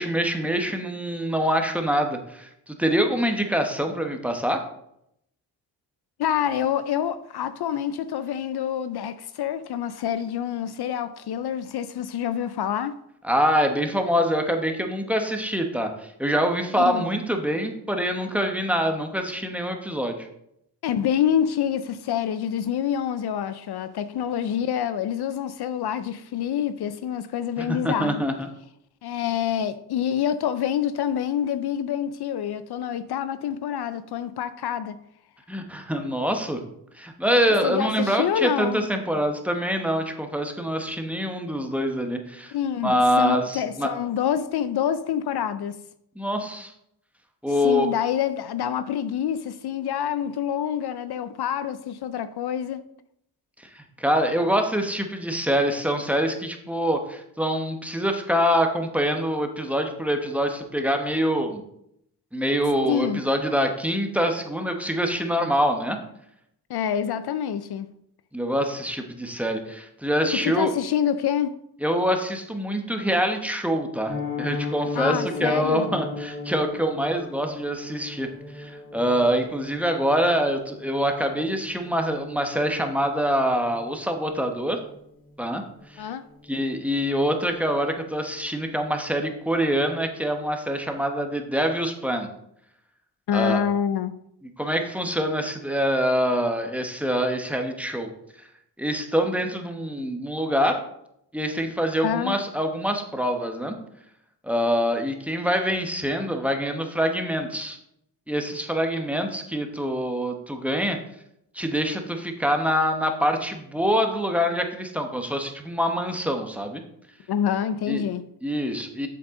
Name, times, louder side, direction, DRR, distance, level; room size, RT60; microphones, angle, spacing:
voice 1, 0.0-4.6 13.2-20.3 27.6-28.5 35.5-36.6 37.0-42.5 42.8-43.9 46.2-46.7 47.4-47.9 53.7-61.6 62.3-66.0 68.3-70.7 71.8-78.3 78.5-84.8 85.4-85.6 85.9-86.0 86.5-92.3 93.3-93.6 94.6-98.1 98.4-98.5 98.8-100.8 101.3-103.8 104.4-107.8 108.3-111.0 111.5-116.8 117.9-118.0 118.4-119.1, equal, 5° right, 1.1 m, -25 dB
voice 2, 6.2-13.0 16.9-17.1 20.8-28.2 29.0-35.0 37.6-38.8 42.5-45.8 47.6-52.8 62.8-63.2 66.7-67.9 70.4-71.6 75.0-75.9 86.0-86.3 93.3-94.1 102.0-102.4 117.3-118.2, left 9 dB, 65° left, 0.5 m, -27 dB
Piano, 74.1-85.0 85.2-85.5 85.8-85.9 86.3-86.5 86.8-86.9, left 3 dB, 20° left, 3.0 m, -36 dB
7.7 x 7.6 x 3.7 m
cardioid pair, 105°, 42 cm